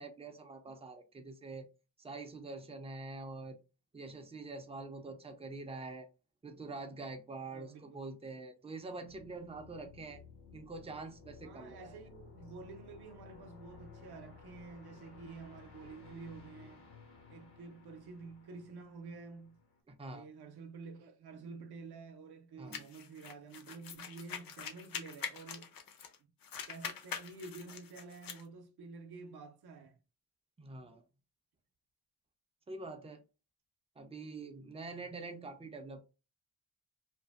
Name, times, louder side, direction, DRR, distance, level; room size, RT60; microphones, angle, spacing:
voice 1, 0.0-1.7 2.0-3.6 3.9-6.1 6.4-10.2 10.5-12.0 19.9-20.3 22.6-22.8 30.6-31.0 32.7-33.2 34.0-36.0, right 3 dB, 15° right, 0.4 m, -45 dB
voice 2, 7.5-8.1 11.4-16.9 17.3-19.6 20.1-25.7 26.7-30.0, right 4 dB, 75° right, 0.6 m, -50 dB
sound 1, 9.1-19.8, left 4 dB, 75° left, 1.2 m, -56 dB
sound 2, 22.7-26.2 26.4-28.4, left 7 dB, 60° left, 0.5 m, -44 dB
2.5 x 2.5 x 2.4 m
wide cardioid pair, 155°, 39 cm